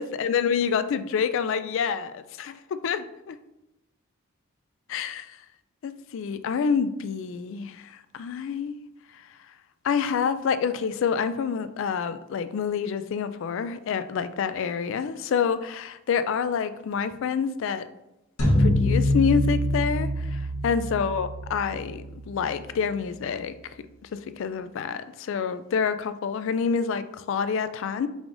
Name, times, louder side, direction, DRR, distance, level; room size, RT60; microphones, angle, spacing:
voice 1, 0.0-3.4 4.9-5.3 5.8-8.8 9.8-17.9 18.6-23.5 24.1-28.1, left 6 dB, 60° left, 0.3 m, -27 dB
sound 1, 18.4-22.7, left 1 dB, 80° left, 1.1 m, -25 dB
4.8 x 2.5 x 3.7 m
head